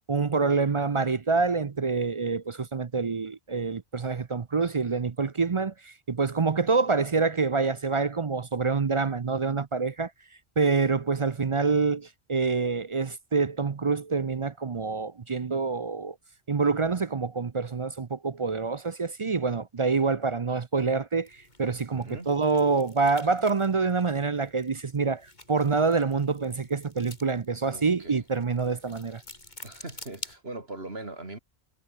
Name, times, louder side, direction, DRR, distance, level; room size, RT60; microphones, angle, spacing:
voice 1, 0.1-10.1 10.6-16.1 16.5-29.2, right 4 dB, 35° right, 0.5 m, -26 dB
sound 1, 21.2-30.4, left 2 dB, 45° left, 4.0 m, -49 dB
voice 2, 21.9-22.3 27.6-28.2 29.6-31.4, right 2 dB, 65° right, 4.6 m, -41 dB
omnidirectional pair, 1.1 m